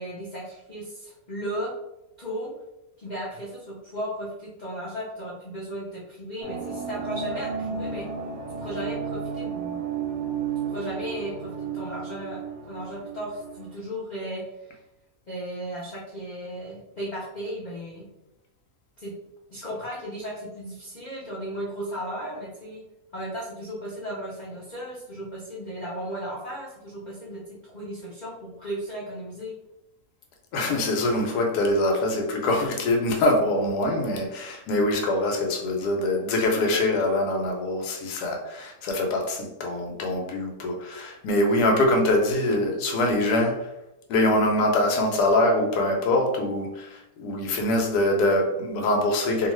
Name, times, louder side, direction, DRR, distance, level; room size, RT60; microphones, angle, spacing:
voice 1, 0.0-1.7 2.2-2.5 3.0-8.1 8.6-9.8 10.7-14.8 15.3-18.1 19.0-19.1 19.5-22.8 23.1-29.5, equal, 55° left, -7 dB, 0.5 m, -35 dB
sound 1, 6.4-13.8, right 6 dB, 70° right, 1.0 m, -33 dB
voice 2, 30.5-43.7 44.1-49.5, left 1 dB, 90° left, 1 dB, 1.2 m, -24 dB
2.6 x 2.4 x 3.0 m, 0.90 s
omnidirectional pair, 1.6 m